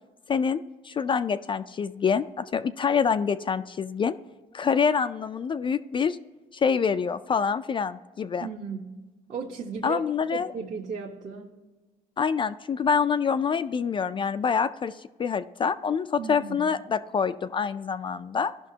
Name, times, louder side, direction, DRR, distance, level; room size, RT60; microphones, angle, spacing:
voice 1, 0.3-4.1 4.5-6.2 6.5-8.5 9.8-10.5 12.2-18.5, left 6 dB, 30° left, 10 dB, 0.3 m, -26 dB
voice 2, 8.4-8.9 9.3-11.5 16.2-16.6, right 5 dB, 45° right, -2 dB, 1.1 m, -35 dB
15.0 x 5.8 x 2.8 m, 1.2 s
cardioid pair, 110°, 17 cm